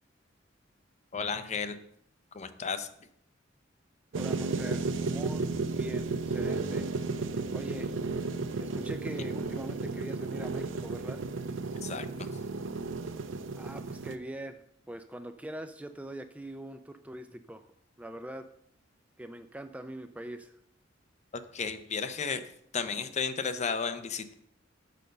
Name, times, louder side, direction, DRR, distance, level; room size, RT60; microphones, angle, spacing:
voice 1, 1.1-1.8 2.3-2.9 11.8-12.3 21.5-22.4 22.7-24.3, left 5 dB, 35° left, 10 dB, 0.6 m, -33 dB
sound 1, 4.1-14.1, right 3 dB, 75° right, 0.6 m, -33 dB
voice 2, 4.2-6.9 7.5-7.9 8.6-11.2 13.5-14.6 14.9-17.6 18.0-18.5 19.2-20.5, right 1 dB, 5° right, 9 dB, 0.3 m, -42 dB
6.6 x 5.3 x 6.4 m, 0.70 s
head